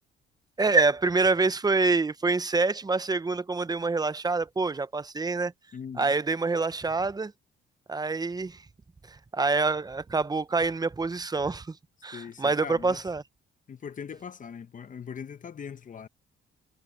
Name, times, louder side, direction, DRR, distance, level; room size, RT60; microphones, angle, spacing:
voice 1, 0.6-5.5 6.0-7.3 7.9-8.6 9.1-11.8 12.0-13.2, right 3 dB, 20° right, 0.8 m, -26 dB
voice 2, 5.7-6.1 12.1-13.0 13.7-16.1, left 7 dB, 40° left, 0.9 m, -40 dB
cardioid pair, 90°, 20 cm